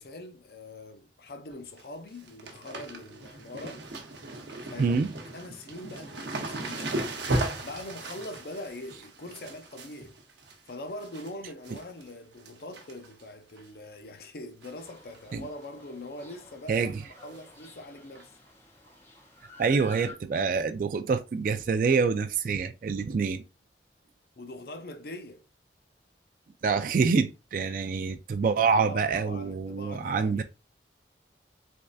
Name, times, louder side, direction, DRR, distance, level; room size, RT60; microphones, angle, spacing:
voice 1, 0.0-3.8 4.7-5.0 5.3-7.0 7.6-10.2 10.7-18.4 24.4-25.4 28.4-28.5 28.7-30.4, left 1 dB, 55° left, 0.5 m, -42 dB
sound 1, 1.5-1.8 2.1-11.3 11.6-12.1 12.4-13.2 13.6-13.7 14.6-14.9 15.1-15.2 15.6-15.7 17.3-17.4 18.2-18.3, right 2 dB, 75° right, 0.8 m, -36 dB
voice 2, 4.8-5.1 15.3-15.5 16.7-17.0 19.6-23.4 26.6-30.4, right 5 dB, 50° right, 0.3 m, -26 dB
sound 2, 14.7-20.1, left 2 dB, 35° left, 1.6 m, -51 dB
3.4 x 3.1 x 2.5 m
head